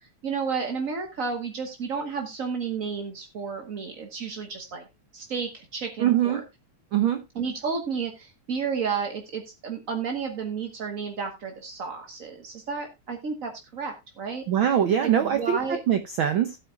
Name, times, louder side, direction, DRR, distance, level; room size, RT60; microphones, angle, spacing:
voice 1, 0.2-4.8 5.1-6.4 7.3-14.4 15.0-15.8, right 5 dB, 50° right, 4 dB, 1.0 m, -32 dB
voice 2, 6.0-6.4 6.9-7.2 14.5-15.6 15.9-16.6, right 10 dB, 80° right, 8 dB, 1.1 m, -22 dB
15.5 x 8.8 x 2.3 m, 0.22 s
omnidirectional pair, 3.3 m